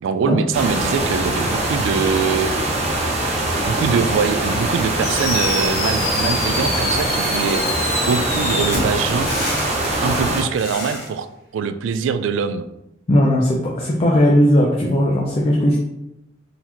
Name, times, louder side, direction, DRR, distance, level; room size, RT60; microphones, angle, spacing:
voice 1, 0.0-2.5 3.7-7.6 7.9-9.3 10.0-11.3 11.5-12.7, right 6 dB, 75° right, 10 dB, 0.3 m, -23 dB
sound 1, 0.5-10.4, right 1 dB, 35° right, 0.7 m, -22 dB
Fireworks, 5.0-11.1, left 2 dB, 50° left, 1.2 m, -26 dB
voice 2, 13.1-15.8, equal, 30° left, -2 dB, 0.4 m, -17 dB
4.0 x 2.7 x 2.9 m, 0.86 s
head